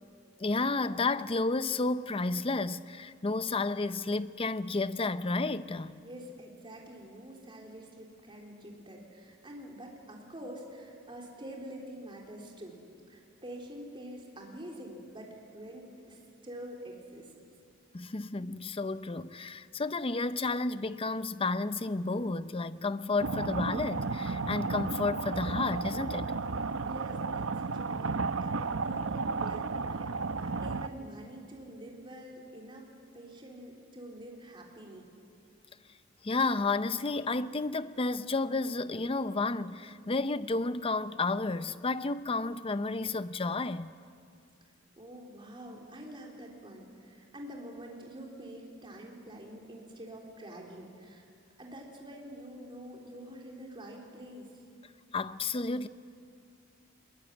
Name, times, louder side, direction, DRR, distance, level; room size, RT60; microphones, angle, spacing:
voice 1, 0.4-6.0 17.9-26.3 36.2-43.9 55.1-55.9, left 3 dB, 25° left, 0.6 m, -31 dB
voice 2, 6.0-12.8 13.1-17.3 26.8-35.1 44.6-44.7 45.0-51.3 51.6-54.5, right 1 dB, 25° right, 3.6 m, -46 dB
sound 1, 23.2-30.9, right 4 dB, 75° right, 0.7 m, -33 dB
21.5 x 21.5 x 9.8 m
head